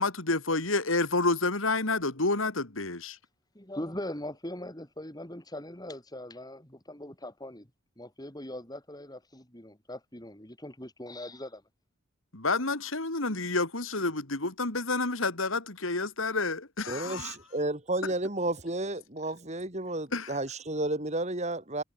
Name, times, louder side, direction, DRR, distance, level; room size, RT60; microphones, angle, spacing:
voice 1, 0.0-3.2 12.3-17.4 20.1-20.4, left 3 dB, 85° left, 3.5 m, -29 dB
voice 2, 3.5-7.7 8.0-11.6, left 1 dB, 20° left, 3.8 m, -41 dB
voice 3, 16.9-21.8, right 2 dB, 35° right, 3.5 m, -32 dB
head